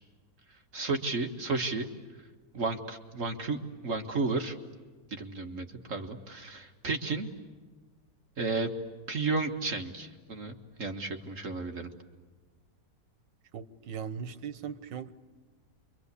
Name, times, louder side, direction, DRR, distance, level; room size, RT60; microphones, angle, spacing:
voice 1, 0.7-1.9 2.5-4.6 5.1-7.3 8.4-8.7 9.1-11.9, right 3 dB, 45° right, 4 dB, 1.8 m, -33 dB
voice 2, 13.5-15.1, right 7 dB, 80° right, 11 dB, 1.8 m, -39 dB
28.5 x 24.0 x 8.3 m, 1.4 s
omnidirectional pair, 1.9 m